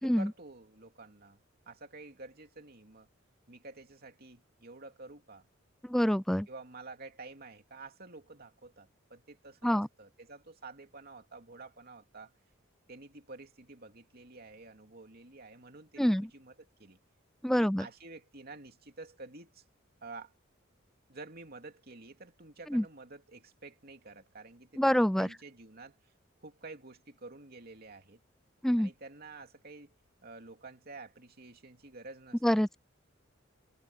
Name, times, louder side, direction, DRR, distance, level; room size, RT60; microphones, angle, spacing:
voice 1, 0.0-3.1 3.5-5.4 6.5-12.3 12.9-16.5 16.8-17.0 17.5-19.6 20.0-20.3 21.1-26.1 26.4-28.2 28.8-29.9 30.2-32.6, right 3 dB, 50° right, 3.0 m, -50 dB
voice 2, 5.8-6.5 9.6-9.9 16.0-16.3 17.4-17.9 22.7-22.8 24.8-25.3 28.6-28.9 32.4-32.8, equal, ahead, 0.3 m, -26 dB
head